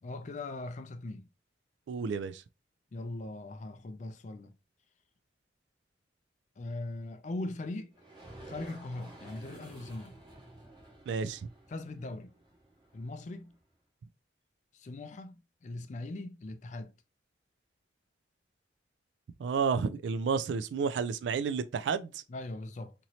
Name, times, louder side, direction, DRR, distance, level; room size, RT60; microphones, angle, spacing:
voice 1, 0.0-1.3 2.9-4.5 6.6-7.9 8.5-10.2 11.7-12.3 12.9-13.6 14.7-15.3 15.6-16.9 22.3-22.9, left 2 dB, 40° left, 0.4 m, -40 dB
voice 2, 1.9-2.4 11.1-11.4 19.4-22.2, right 5 dB, 80° right, 0.3 m, -31 dB
sound 1, 7.9-13.6, right 1 dB, 25° right, 0.9 m, -52 dB
2.9 x 2.7 x 2.8 m
head